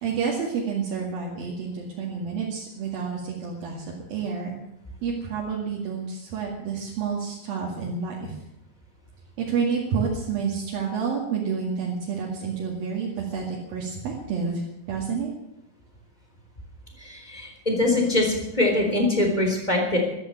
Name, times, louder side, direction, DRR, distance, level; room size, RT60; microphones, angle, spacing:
voice 1, 0.0-4.5 5.0-8.4 9.4-15.3, right 5 dB, 70° right, -3 dB, 3.9 m, -29 dB
voice 2, 17.0-20.0, left 2 dB, 10° left, 2 dB, 3.3 m, -23 dB
14.0 x 13.0 x 7.7 m, 0.86 s
omnidirectional pair, 4.4 m